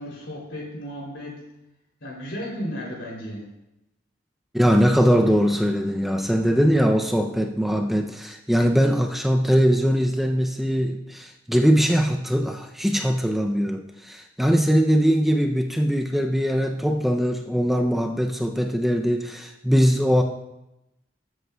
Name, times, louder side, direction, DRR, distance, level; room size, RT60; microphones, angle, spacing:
voice 1, 0.0-1.4 2.0-3.5, equal, 80° left, -2 dB, 3.0 m, -34 dB
voice 2, 4.5-20.2, equal, ahead, 3 dB, 0.4 m, -21 dB
13.5 x 8.1 x 2.2 m, 0.89 s
head